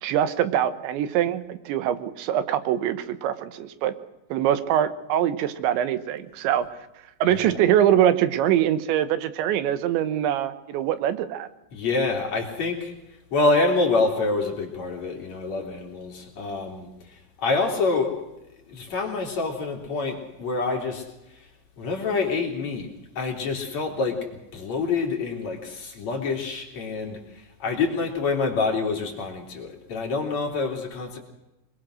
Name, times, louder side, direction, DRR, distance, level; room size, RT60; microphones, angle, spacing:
voice 1, 0.0-3.9 4.3-6.7 7.2-11.5, right 10 dB, 90° right, 12 dB, 3.5 m, -23 dB
voice 2, 11.7-12.9 13.3-16.9 17.4-18.1 18.7-21.0 21.8-22.9 23.2-24.2 24.5-27.2 27.6-31.2, left 3 dB, 45° left, 2 dB, 3.6 m, -26 dB
25.5 x 21.0 x 6.3 m, 0.93 s
omnidirectional pair, 5.1 m